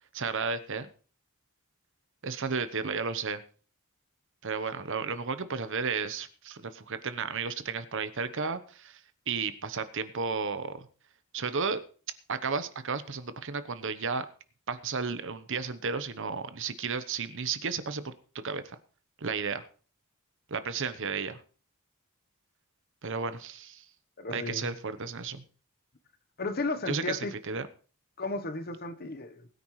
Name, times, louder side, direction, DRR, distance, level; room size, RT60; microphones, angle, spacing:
voice 1, 0.1-0.9 2.2-3.4 4.4-10.9 11.3-11.8 12.3-14.3 14.7-18.1 18.4-18.8 19.2-19.7 20.5-21.4 23.0-23.8 24.3-25.4 26.9-27.7, right 5 dB, 55° right, 1.0 m, -33 dB
voice 2, 24.2-24.7 26.4-27.3 28.2-29.5, left 2 dB, 45° left, 1.1 m, -34 dB
20.5 x 9.4 x 3.2 m
head